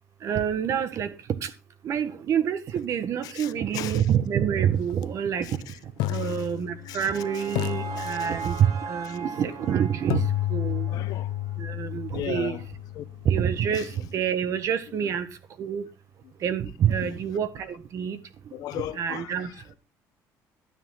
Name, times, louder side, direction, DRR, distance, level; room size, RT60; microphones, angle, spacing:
voice 1, 0.2-1.1 1.9-5.4 6.1-10.2 10.5-10.9 11.6-12.6 13.3-13.9 14.1-15.3 15.6-15.8 16.4-17.5 17.9-18.2 19.0-19.5, right 8 dB, 50° right, 1.6 m, -26 dB
voice 2, 3.2-4.1 5.4-5.8 6.1-6.5 6.8-7.5 7.9-8.6 9.0-9.2 9.7-9.8 10.9-11.3 12.1-12.6 12.9-13.0 13.7-13.9 15.0-15.1 17.0-17.2 18.5-19.6, left 14 dB, 70° left, 1.0 m, -38 dB
sound 1, 4.9-5.0 6.0-7.2 7.5-8.8 10.1-14.0, left 14 dB, 85° left, 0.5 m, -31 dB
sound 2, 6.5-11.7, right 5 dB, 70° right, 1.7 m, -38 dB
12.5 x 9.5 x 4.0 m
cardioid pair, 130°, 7 cm